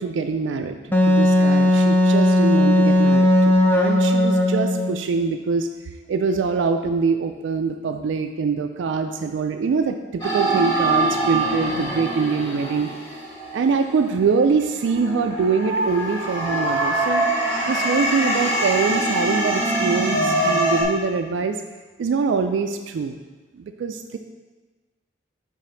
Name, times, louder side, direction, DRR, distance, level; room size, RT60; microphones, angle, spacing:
voice 1, 0.0-5.7 6.1-12.9 13.5-17.3 17.7-21.6 22.0-23.2 23.6-24.2, right 5 dB, 80° right, 6 dB, 0.3 m, -24 dB
Wind instrument woodwind instrument, 0.9-5.0, left 1 dB, 10° left, 0.4 m, -17 dB
sound 1, 10.2-14.2 14.8-20.8, right 1 dB, 30° left, 1.5 m, -23 dB
5.0 x 3.4 x 5.6 m, 1.3 s
head